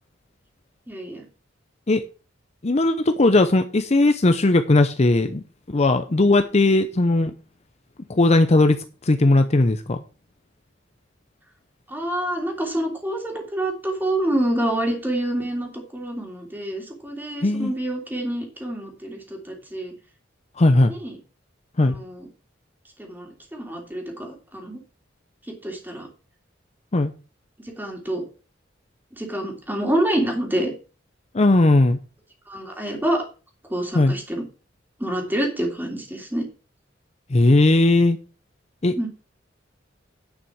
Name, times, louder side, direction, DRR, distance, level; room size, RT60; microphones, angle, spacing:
voice 1, 0.9-1.3 11.9-19.9 20.9-21.2 21.8-22.3 23.0-24.8 25.5-26.1 27.6-28.2 29.1-30.7 32.5-33.2 33.7-34.4 35.0-36.5 39.0-39.1, right 1 dB, 10° right, 1 dB, 3.0 m, -27 dB
voice 2, 2.6-7.3 8.1-10.0 17.4-17.7 20.6-20.9 21.8-21.9 26.9-27.1 31.3-32.0 33.9-34.1 37.3-38.2 38.8-39.0, left 2 dB, 35° left, 9 dB, 0.7 m, -18 dB
10.0 x 6.1 x 6.1 m, 0.34 s
head